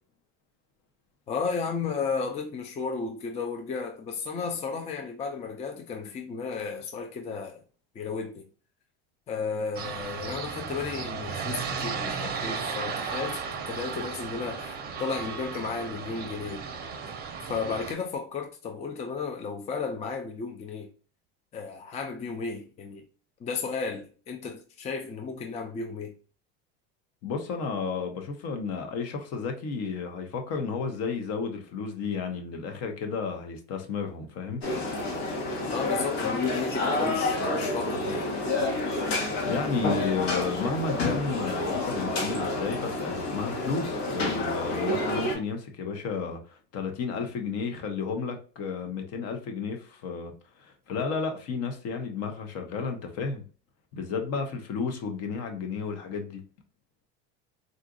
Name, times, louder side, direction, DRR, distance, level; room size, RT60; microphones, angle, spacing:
voice 1, 1.3-7.6 7.9-8.5 9.3-16.6 17.5-20.9 21.5-23.0 23.4-26.1 35.7-38.3, left 5 dB, 20° left, 0.4 m, -33 dB
sound 1, 9.7-17.9, right 5 dB, 30° right, 0.6 m, -35 dB
voice 2, 27.2-34.6 39.5-53.4 53.9-56.4, left 5 dB, 50° left, 0.8 m, -32 dB
sound 2, 34.6-45.3, left 2 dB, 80° left, 1.3 m, -29 dB
3.9 x 2.4 x 2.4 m
supercardioid pair, 105°, 32 cm